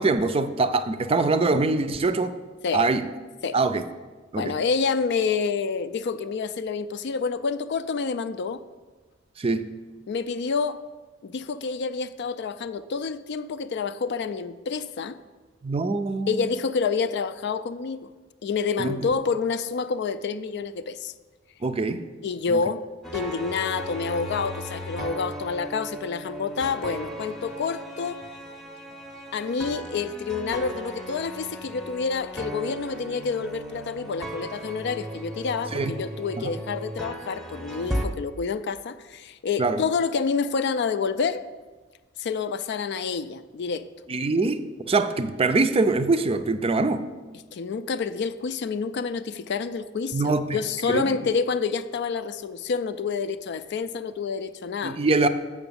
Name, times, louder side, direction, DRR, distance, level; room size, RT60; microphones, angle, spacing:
voice 1, 0.0-2.4 2.7-3.0 3.5-3.8 4.3-4.5 9.4-9.7 15.6-16.5 18.8-19.0 21.6-22.0 22.5-22.6 35.7-36.0 36.4-36.5 39.6-39.8 44.1-44.6 44.9-47.0 50.1-50.6 50.9-51.0 54.8-55.3, right 3 dB, 30° right, 10 dB, 0.4 m, -23 dB
voice 2, 4.4-8.6 10.1-10.8 11.2-15.2 16.3-18.1 18.4-21.1 22.2-28.2 29.3-41.4 42.2-43.9 47.5-55.0, left 5 dB, 60° left, 13 dB, 0.4 m, -28 dB
sound 1, 23.0-38.1, equal, ahead, 0.7 m, -36 dB
7.1 x 5.8 x 6.9 m, 1.3 s
head